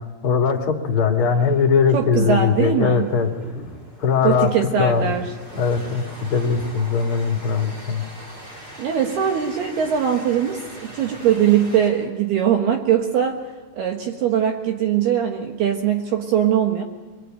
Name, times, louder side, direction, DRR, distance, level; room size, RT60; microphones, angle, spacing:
voice 1, 0.2-3.3 4.0-4.5 4.8-5.1 5.5-8.0, left 5 dB, 45° left, 2 dB, 1.8 m, -20 dB
sound 1, 0.9-6.9, equal, ahead, 0.9 m, -42 dB
voice 2, 1.9-3.1 4.2-5.2 8.8-13.4 13.8-16.8, right 9 dB, 65° right, 3 dB, 2.8 m, -21 dB
Train, 2.2-11.9, equal, 20° right, 4.3 m, -42 dB
24.5 x 23.5 x 9.0 m, 1.3 s
omnidirectional pair, 6.0 m